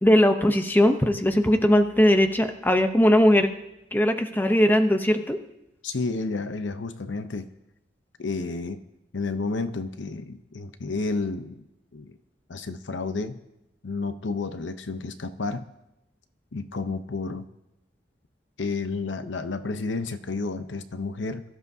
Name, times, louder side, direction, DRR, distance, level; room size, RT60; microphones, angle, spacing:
voice 1, 0.0-3.5 3.9-5.4, equal, 10° left, 6 dB, 0.7 m, -19 dB
voice 2, 5.8-7.5 8.2-8.8 9.1-11.7 11.9-12.1 12.5-13.4 13.8-15.7 16.5-17.5 18.6-21.4, left 3 dB, 75° left, 10 dB, 0.7 m, -31 dB
22.0 x 13.0 x 2.7 m, 0.89 s
head